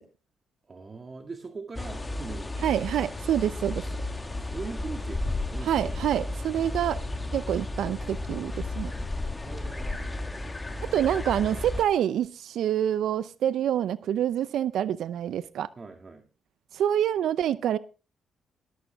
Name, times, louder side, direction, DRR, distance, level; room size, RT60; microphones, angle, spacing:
voice 1, 0.7-2.7 4.3-6.3 9.4-11.0 15.8-16.2, right 4 dB, 40° right, 4 dB, 2.0 m, -42 dB
sound 1, 1.7-11.8, left 2 dB, 20° left, 1.4 m, -33 dB
voice 2, 2.6-3.8 5.6-7.0 7.3-8.9 10.9-15.7 16.7-17.8, right 10 dB, 75° right, 16 dB, 0.6 m, -26 dB
13.5 x 13.0 x 3.5 m, 0.33 s
supercardioid pair, 60°, 0 cm